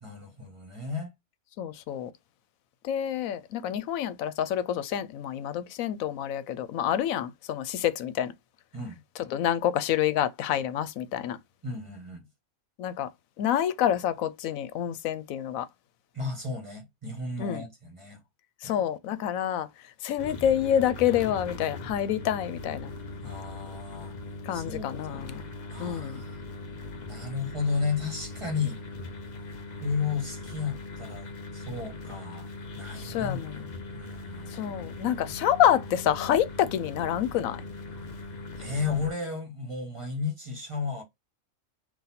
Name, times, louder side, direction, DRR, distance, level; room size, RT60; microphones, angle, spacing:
voice 1, 0.0-1.1 8.7-9.0 11.6-12.2 16.1-18.2 18.6-18.8 23.2-24.2 24.5-25.3 25.7-26.4 27.1-28.8 29.8-32.5 32.7-33.4 33.9-34.6 38.6-41.0, left 4 dB, 25° right, 1.1 m, -33 dB
voice 2, 1.6-2.1 2.8-8.3 9.3-11.4 12.8-13.1 13.4-15.7 17.4-17.6 18.6-19.7 20.0-22.9 24.5-25.4 25.8-26.2 33.0-33.6 34.5-37.6, left 10 dB, 85° left, 1.0 m, -27 dB
sound 1, 20.2-39.1, left 2 dB, 40° left, 0.7 m, -40 dB
4.0 x 2.5 x 4.1 m
omnidirectional pair, 1.4 m